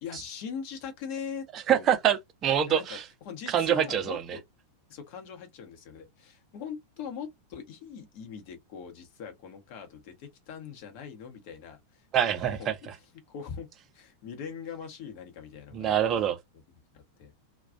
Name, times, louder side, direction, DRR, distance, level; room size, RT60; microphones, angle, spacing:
voice 1, 0.0-1.9 2.7-3.0 3.2-4.4 4.9-12.9 13.3-16.0 16.9-17.3, left 7 dB, 45° left, 0.8 m, -41 dB
voice 2, 1.5-3.0 3.5-4.4 12.1-12.8 15.7-16.4, right 9 dB, 30° right, 0.5 m, -25 dB
2.4 x 2.2 x 2.5 m
figure-of-eight pair, 90°, 0 cm